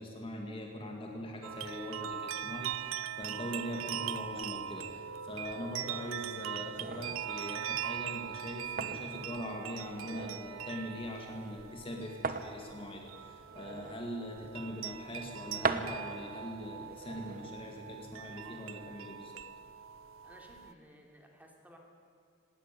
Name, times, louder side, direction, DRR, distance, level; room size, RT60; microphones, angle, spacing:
voice 1, 0.0-19.4, left 1 dB, 25° left, 2 dB, 2.0 m, -42 dB
sound 1, 1.4-20.7, right 9 dB, 90° right, 0.6 m, -41 dB
sound 2, 6.8-18.6, right 4 dB, 45° right, 1.2 m, -42 dB
voice 2, 20.2-21.8, equal, 10° right, 1 dB, 3.0 m, -57 dB
19.0 x 18.5 x 9.1 m, 2.5 s
head